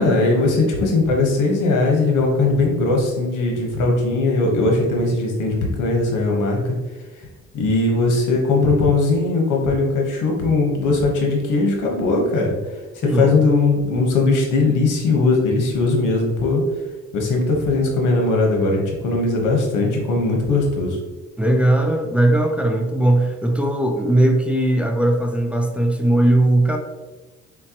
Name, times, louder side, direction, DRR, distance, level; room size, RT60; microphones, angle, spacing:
voice 1, 0.0-6.8 7.5-12.6 12.9-16.6 17.1-21.0, left 3 dB, 85° left, 0 dB, 1.2 m, -19 dB
voice 2, 13.0-13.5 21.4-26.8, right 1 dB, 5° right, 3 dB, 0.5 m, -18 dB
4.5 x 4.1 x 2.9 m, 1.2 s
cardioid pair, 90°, 30 cm